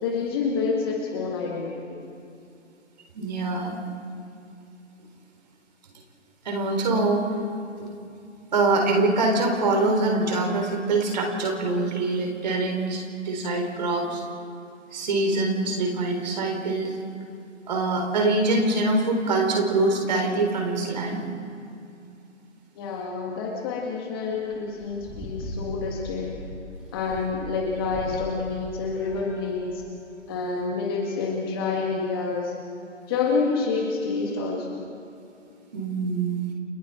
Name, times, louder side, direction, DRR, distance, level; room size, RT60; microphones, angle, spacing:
voice 1, 0.0-2.0 22.8-26.4 26.9-29.8 30.3-32.6 33.1-34.9, left 4 dB, 20° left, -1 dB, 1.8 m, -28 dB
voice 2, 3.1-3.8 6.4-7.4 8.5-14.2 14.9-17.0 17.7-21.2 35.7-36.5, right 2 dB, 35° right, 2 dB, 3.9 m, -24 dB
sound 1, 24.4-29.9, equal, ahead, 2.2 m, -39 dB
30.0 x 25.0 x 4.4 m, 2.6 s
figure-of-eight pair, 145°, 37 cm